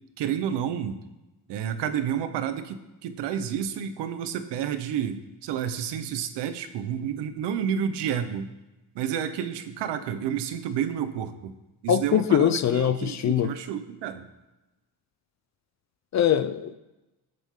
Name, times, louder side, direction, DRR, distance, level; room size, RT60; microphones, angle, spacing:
voice 1, 0.2-1.0 1.5-8.5 8.9-11.5 11.8-14.3, right 9 dB, 80° right, 10 dB, 1.2 m, -30 dB
voice 2, 11.9-13.5 16.1-16.7, left 9 dB, 40° left, 12 dB, 0.6 m, -22 dB
19.0 x 8.1 x 3.9 m, 1.0 s
cardioid pair, 120°, 41 cm